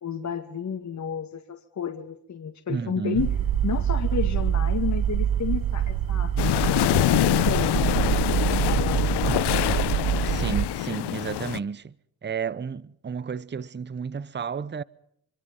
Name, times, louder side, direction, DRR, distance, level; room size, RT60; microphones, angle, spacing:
voice 1, 0.0-3.3 3.6-6.3 6.7-9.3, left 7 dB, 45° left, 2.2 m, -32 dB
voice 2, 2.7-3.3 9.3-9.5 10.2-11.9 12.2-14.8, right 6 dB, 25° right, 0.9 m, -32 dB
sound 1, 3.1-10.7, right 10 dB, 60° right, 1.0 m, -25 dB
sound 2, 6.4-11.6, left 15 dB, 80° left, 0.8 m, -25 dB
25.5 x 25.0 x 5.4 m
cardioid pair, 80°, 40 cm